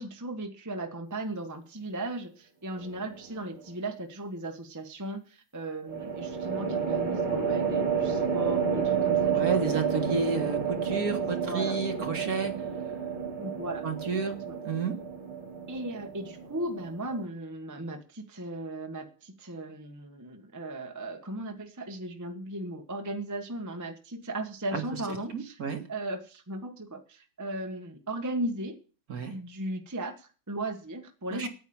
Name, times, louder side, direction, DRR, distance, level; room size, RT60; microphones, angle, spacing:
voice 1, 0.0-9.6 11.2-11.8 13.4-14.6 15.7-25.6 25.9-28.8 29.3-31.5, right 1 dB, 10° right, 4 dB, 1.2 m, -37 dB
sound 1, 2.8-3.3 5.9-17.2, right 6 dB, 75° right, 3.3 m, -30 dB
voice 2, 9.3-12.5 13.8-14.4 14.6-14.9 24.7-24.8 25.3-25.8 29.1-29.3 31.3-31.5, right 5 dB, 45° right, 5 dB, 1.9 m, -31 dB
9.4 x 9.4 x 8.7 m, 0.37 s
omnidirectional pair, 2.3 m